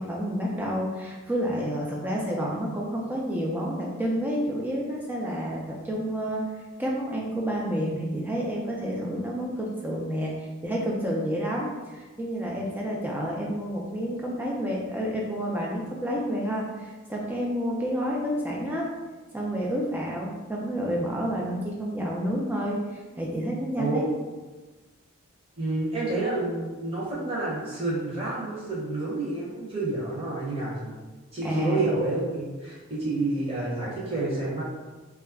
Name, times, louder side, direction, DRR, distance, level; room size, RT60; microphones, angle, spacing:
voice 1, 0.0-6.4 6.8-18.9 19.3-24.1 31.4-31.9, equal, 10° right, -3 dB, 0.3 m, -29 dB
voice 2, 25.6-31.0 31.3-34.6, right 2 dB, 25° right, -7 dB, 0.8 m, -29 dB
2.3 x 2.0 x 3.4 m, 1.3 s
head